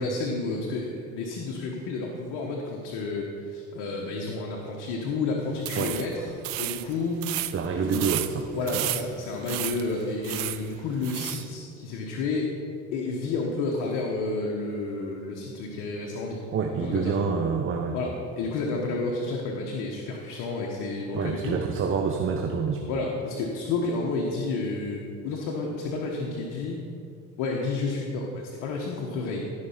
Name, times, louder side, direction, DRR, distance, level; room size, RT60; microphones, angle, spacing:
voice 1, 0.0-6.3 6.6-7.3 7.8-8.1 8.5-12.5 12.9-16.4 16.8-17.1 17.9-21.5 22.9-26.8 27.4-29.5, left 3 dB, 70° left, -1 dB, 1.4 m, -30 dB
sound 1, 5.6-11.5, right 17 dB, 70° right, 0.6 m, -34 dB
voice 2, 7.5-8.5 8.7-8.9 16.5-18.0 21.1-22.9, right 5 dB, 35° right, 3 dB, 1.0 m, -27 dB
14.5 x 5.5 x 5.7 m, 2.5 s
supercardioid pair, 90°, 35 cm